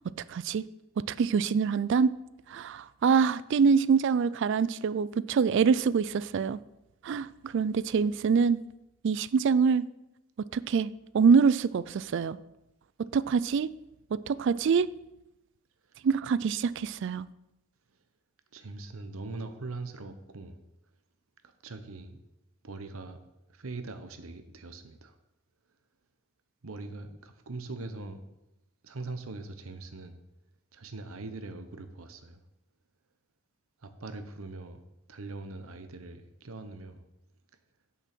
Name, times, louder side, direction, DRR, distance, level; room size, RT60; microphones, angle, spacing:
voice 1, 0.3-0.6 1.1-2.1 2.5-6.6 7.0-8.6 9.0-9.9 10.5-12.4 13.0-13.7 14.1-14.9 16.0-17.3, right 5 dB, 60° right, 18 dB, 0.3 m, -25 dB
voice 2, 18.5-20.6 21.4-22.2 22.6-23.2 23.5-25.1 26.6-28.2 28.8-30.2 30.7-32.4 33.8-34.8 35.1-37.0, right 3 dB, 80° right, 8 dB, 0.9 m, -41 dB
8.4 x 7.1 x 6.1 m, 0.90 s
head